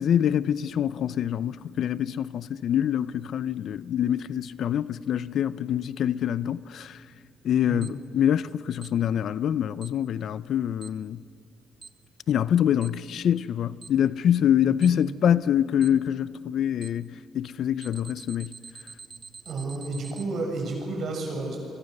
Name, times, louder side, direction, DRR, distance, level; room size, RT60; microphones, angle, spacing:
voice 1, 0.0-7.0 7.4-11.2 12.3-18.5, left 9 dB, 65° left, 0.5 m, -25 dB
Alarm, 7.8-7.9 8.8-8.9 9.8-9.9 10.8-10.9 11.8-11.9 12.8-12.9 13.8-13.9 14.8-14.9 15.8-15.9 16.8-16.9 17.8-20.2, right 5 dB, 30° right, 1.1 m, -44 dB
voice 2, 14.6-15.1 19.5-21.6, right 3 dB, 60° right, 7.1 m, -32 dB
29.5 x 23.5 x 6.7 m
cardioid pair, 110°, 0 cm